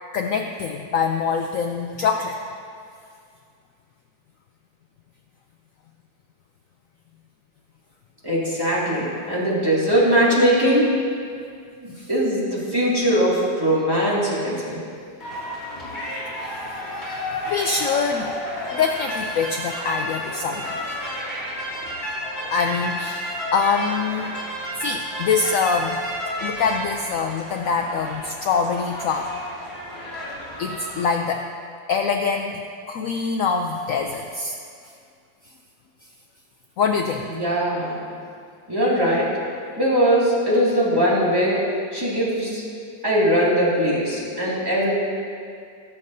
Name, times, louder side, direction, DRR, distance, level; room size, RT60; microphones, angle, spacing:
voice 1, 0.1-2.4 12.0-12.1 16.4-16.6 17.5-18.3 18.7-20.8 22.5-24.3 24.8-26.0 26.4-29.3 30.6-31.5 31.9-34.6 36.8-37.3, left 5 dB, 85° left, 4 dB, 0.7 m, -24 dB
voice 2, 8.2-10.9 11.8-14.8 37.3-38.0 38.7-39.3 39.8-41.6 41.9-42.6 43.0-44.9, equal, 10° right, -7 dB, 2.2 m, -20 dB
sound 1, 15.2-31.0, equal, 35° left, 2.6 m, -31 dB
19.5 x 7.2 x 2.7 m, 2.3 s
omnidirectional pair, 2.0 m